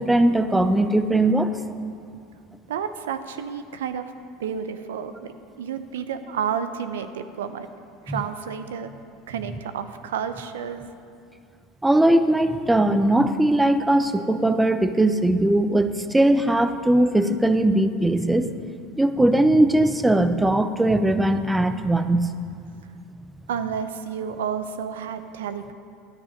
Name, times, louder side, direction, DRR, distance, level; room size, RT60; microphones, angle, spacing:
voice 1, 0.0-1.5 8.1-8.2 11.8-18.5 19.0-22.3, right 1 dB, 10° right, 10 dB, 0.7 m, -20 dB
voice 2, 2.7-4.1 4.4-7.7 8.1-8.9 9.3-10.9 23.5-25.7, right 7 dB, 80° right, 10 dB, 0.6 m, -31 dB
12.0 x 10.5 x 5.2 m, 2.4 s
hypercardioid pair, 80°, 0 cm